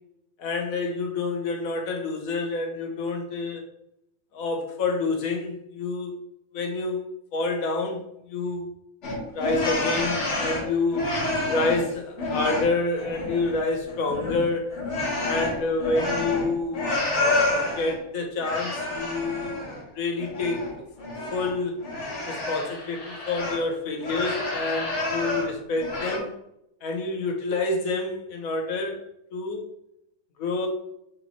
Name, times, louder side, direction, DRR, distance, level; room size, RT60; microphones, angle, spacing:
voice 1, 0.4-3.6 4.3-6.2 6.5-7.1 7.3-8.0 8.3-8.7 9.3-11.2 11.5-14.7 15.2-16.8 17.7-19.5 19.9-20.7 21.3-21.8 22.3-26.3 26.8-29.0 29.3-29.6 30.4-30.7, left 3 dB, 80° left, 2 dB, 1.3 m, -28 dB
sound 1, 9.0-11.9 12.2-13.6 13.9-18.0 18.4-19.8 20.2-23.6 24.0-25.5 25.8-26.2, left 2 dB, 60° left, 1.4 m, -29 dB
3.7 x 3.0 x 4.2 m, 0.80 s
omnidirectional pair, 1.5 m